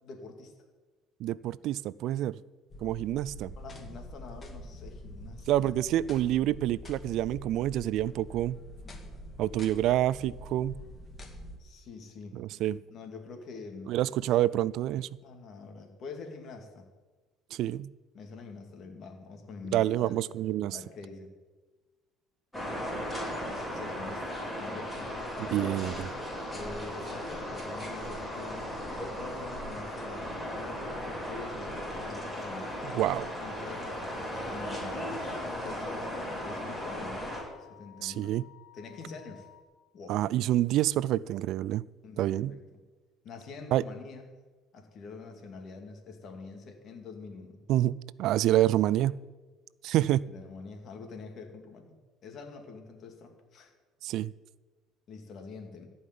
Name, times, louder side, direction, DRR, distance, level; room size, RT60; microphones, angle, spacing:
voice 1, 0.0-0.5 3.5-5.9 11.6-12.6 12.9-13.9 14.2-14.4 15.2-16.9 18.1-20.2 20.7-21.3 23.7-28.7 29.2-37.3 37.6-38.3 38.7-39.5 39.9-40.2 42.0-42.8 43.2-44.2 44.7-47.6 50.3-51.9 52.2-53.7 55.1-55.9, left 4 dB, 50° left, 2.4 m, -45 dB
voice 2, 1.2-2.4 2.8-3.5 5.5-8.6 9.4-10.8 12.3-12.8 13.9-15.1 17.5-17.9 19.7-20.8 25.4-26.1 32.9-33.3 38.0-38.4 40.1-41.8 42.2-42.6 43.7-43.8 47.7-49.2 49.8-50.3 54.0-54.3, right 13 dB, 65° right, 0.3 m, -27 dB
sound 1, 2.7-11.6, left 1 dB, 25° left, 2.0 m, -46 dB
sound 2, 22.5-37.4, equal, 10° left, 4.8 m, -36 dB
sound 3, 32.4-39.6, left 14 dB, 75° left, 1.5 m, -55 dB
15.0 x 5.5 x 9.4 m
cardioid pair, 120°, 0 cm